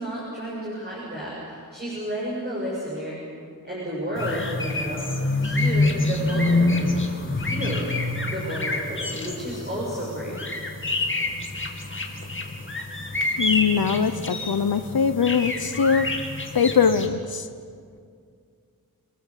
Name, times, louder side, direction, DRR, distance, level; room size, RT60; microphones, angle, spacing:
voice 1, 0.0-3.2 3.6-7.0 7.3-7.9 8.2-10.5, right 1 dB, 25° right, -6 dB, 7.0 m, -32 dB
sound 1, 4.1-17.1, left 2 dB, 30° left, 2.6 m, -27 dB
voice 2, 13.4-16.1 16.5-17.5, left 6 dB, 70° left, 9 dB, 0.9 m, -22 dB
27.5 x 20.5 x 7.5 m, 2.2 s
wide cardioid pair, 95°, 37 cm